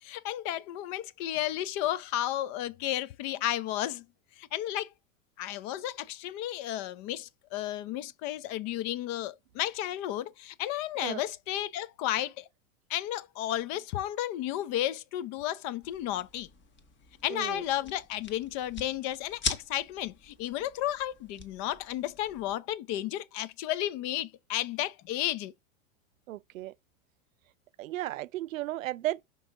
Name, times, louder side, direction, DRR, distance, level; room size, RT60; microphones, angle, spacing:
voice 1, 0.0-4.0 4.4-4.9 5.4-12.5 12.9-16.5 17.2-25.5, left 13 dB, 45° left, 0.7 m, -33 dB
sound 1, 15.8-22.5, left 4 dB, 30° left, 1.3 m, -42 dB
voice 2, 17.3-17.6 26.3-26.7 27.8-29.2, right 15 dB, 80° right, 0.5 m, -34 dB
5.4 x 5.4 x 3.7 m
hypercardioid pair, 100°, 39 cm